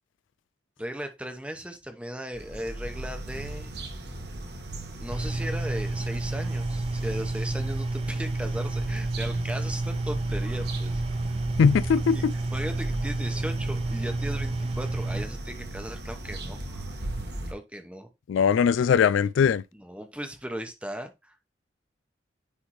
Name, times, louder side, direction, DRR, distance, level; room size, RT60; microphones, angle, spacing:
voice 1, 0.8-3.8 5.0-11.0 12.1-12.2 12.5-16.9 17.5-18.1 19.7-21.4, equal, 5° right, 0.9 m, -37 dB
sound 1, 2.3-17.5, right 1 dB, 60° right, 1.5 m, -37 dB
sound 2, 5.1-15.2, right 2 dB, 30° right, 0.5 m, -30 dB
voice 2, 11.6-12.3 18.3-19.6, left 6 dB, 85° left, 0.3 m, -20 dB
10.0 x 3.5 x 3.0 m
head